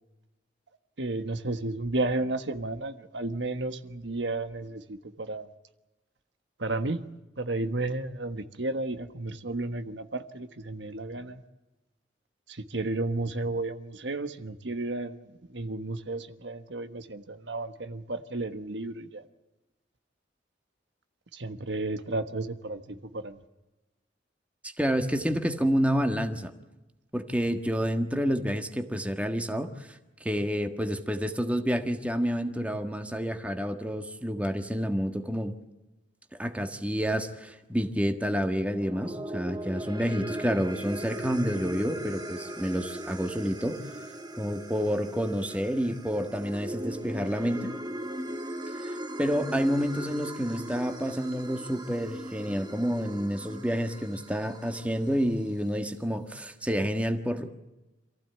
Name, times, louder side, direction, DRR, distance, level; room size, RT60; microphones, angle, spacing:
voice 1, 1.0-5.5 6.6-7.1 7.4-11.4 12.5-15.2 15.5-19.2 21.3-23.4, right 2 dB, 75° right, 10 dB, 1.4 m, -33 dB
voice 2, 24.6-26.5 27.1-35.5 36.4-43.8 44.4-47.7 48.8-57.5, equal, 5° right, 6 dB, 1.5 m, -29 dB
sound 1, 38.7-55.2, right 1 dB, 25° right, 1.7 m, -39 dB
27.0 x 15.5 x 9.3 m, 1.0 s
head